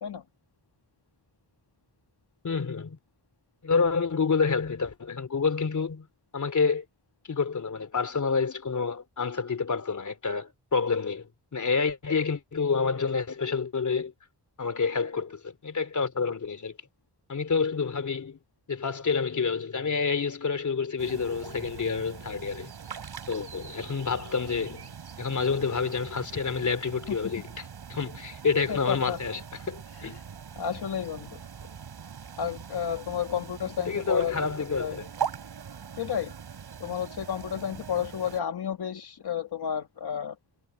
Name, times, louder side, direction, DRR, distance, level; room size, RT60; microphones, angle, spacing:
voice 1, 2.4-3.0 3.6-6.1 6.3-6.8 7.3-14.1 14.6-16.8 17.3-18.4 18.7-22.7 23.3-29.4 29.7-30.2 33.9-35.1, left 5 dB, 45° left, 3.2 m, -28 dB
sound 1, 21.0-38.4, right 7 dB, 70° right, 5.9 m, -41 dB
voice 2, 28.7-29.2 30.6-31.4 32.4-34.4 34.8-35.0 36.0-36.3 36.8-40.4, left 8 dB, 65° left, 2.0 m, -31 dB
wide cardioid pair, 130°, 41 cm